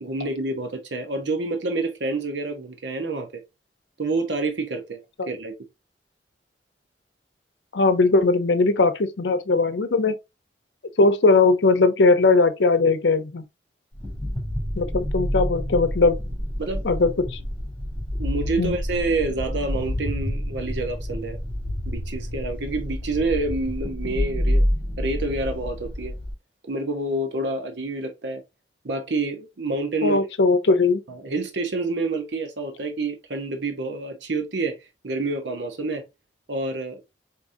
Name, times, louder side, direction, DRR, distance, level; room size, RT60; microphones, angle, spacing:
voice 1, 0.0-3.4 4.0-5.0 5.3-5.5 16.6-16.8 18.2-21.4 21.9-24.6 25.0-26.1 26.7-28.4 28.8-30.2 31.1-34.8 35.0-36.0 36.5-37.0, right 2 dB, 80° right, 0.8 m, -28 dB
voice 2, 7.7-10.2 11.0-13.4 14.7-16.2 16.8-17.4 18.6-18.8 30.0-31.0, left 3 dB, 80° left, 0.7 m, -19 dB
sound 1, 13.9-26.3, equal, 10° left, 2.3 m, -28 dB
4.9 x 2.9 x 2.6 m
head